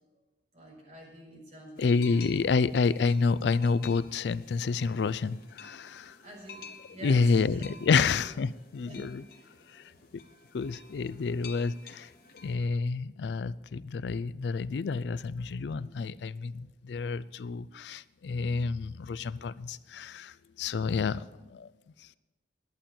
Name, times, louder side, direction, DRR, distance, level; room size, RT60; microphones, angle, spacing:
voice 1, 0.5-2.5 6.2-6.6 6.9-7.7 7.9-8.1 8.8-9.0 9.3-9.4, right 1 dB, 40° right, -2 dB, 4.9 m, -47 dB
voice 2, 1.8-6.2 7.0-9.2 9.7-10.2 10.5-12.1 12.4-21.7 22.0-22.1, left 4 dB, 75° left, 18 dB, 0.4 m, -29 dB
sound 1, 1.8-12.5, left 5 dB, 55° left, 1.3 m, -51 dB
11.5 x 8.6 x 7.5 m, 1.1 s
head